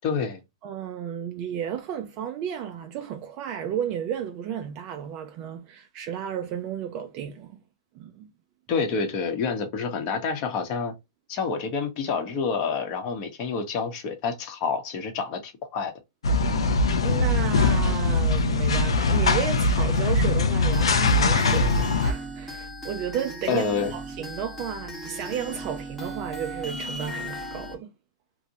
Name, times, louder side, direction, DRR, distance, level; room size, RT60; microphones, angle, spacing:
voice 1, 0.0-0.4 8.7-10.9 11.3-15.9 23.5-23.9, left 5 dB, 35° left, 0.7 m, -28 dB
voice 2, 0.6-7.6 7.9-8.3 16.4-16.7 17.0-23.6 23.9-27.9, right 9 dB, 35° right, 0.3 m, -33 dB
sound 1, 16.2-22.1, left 3 dB, 85° left, 0.5 m, -21 dB
sound 2, 20.7-27.8, equal, 5° left, 0.8 m, -37 dB
2.5 x 2.1 x 2.7 m
hypercardioid pair, 145°, 3 cm